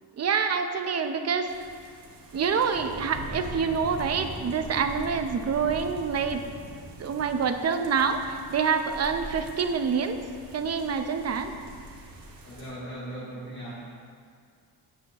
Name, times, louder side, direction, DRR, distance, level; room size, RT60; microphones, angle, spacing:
voice 1, 0.2-1.5 2.3-6.4 7.0-10.2 10.5-11.5, right 6 dB, 40° right, 7 dB, 0.8 m, -26 dB
sound 1, 1.5-12.7, right 1 dB, 65° right, 2.0 m, -42 dB
voice 2, 12.4-13.7, right 1 dB, 45° left, -12 dB, 3.2 m, -38 dB
16.5 x 8.7 x 3.0 m, 2.1 s
cardioid pair, 150°, 38 cm